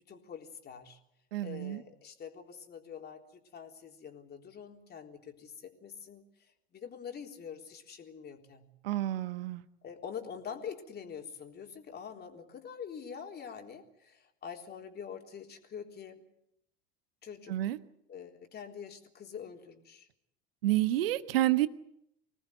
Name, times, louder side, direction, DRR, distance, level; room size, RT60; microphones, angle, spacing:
voice 1, 0.1-1.0 1.4-8.7 9.8-16.2 17.2-17.6 18.1-20.1, left 7 dB, 30° left, 3 dB, 3.8 m, -45 dB
voice 2, 1.3-1.8 8.8-9.6 17.5-17.8 20.6-21.7, right 15 dB, 65° right, 13 dB, 1.3 m, -29 dB
25.5 x 19.0 x 8.0 m, 0.78 s
figure-of-eight pair, 80°, 31 cm